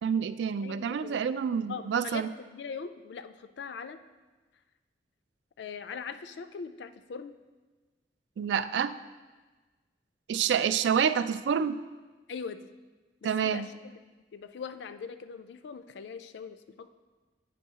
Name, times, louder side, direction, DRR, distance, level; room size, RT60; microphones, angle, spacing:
voice 1, 0.0-2.3 8.4-9.0 10.3-11.8 13.2-13.7, right 7 dB, 90° right, 13 dB, 0.3 m, -28 dB
voice 2, 0.6-1.2 1.7-4.0 5.6-7.3 12.3-12.7 13.2-13.9 14.3-16.9, left 5 dB, 80° left, 11 dB, 0.4 m, -41 dB
9.1 x 5.4 x 2.8 m, 1.3 s
head